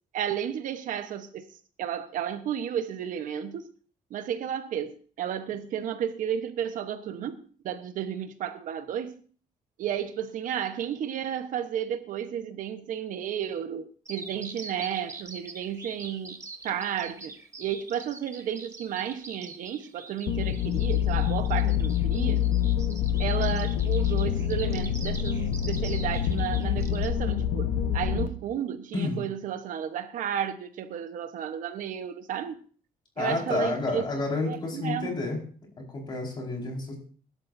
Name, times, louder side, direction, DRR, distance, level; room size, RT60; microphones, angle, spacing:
voice 1, 0.1-1.5 1.8-3.7 4.1-9.1 9.8-17.3 17.6-22.4 23.2-32.6 33.2-34.1 34.5-35.2, right 9 dB, 65° right, 1.1 m, -33 dB
Bird vocalization bird call bird song, 14.1-27.1, right 4 dB, 20° right, 1.1 m, -43 dB
sound 1, 20.3-28.3, left 10 dB, 75° left, 1.1 m, -26 dB
voice 2, 33.2-35.4 35.8-37.0, left 3 dB, 30° left, 4.8 m, -30 dB
23.0 x 12.0 x 2.7 m
cardioid pair, 170°, 15 cm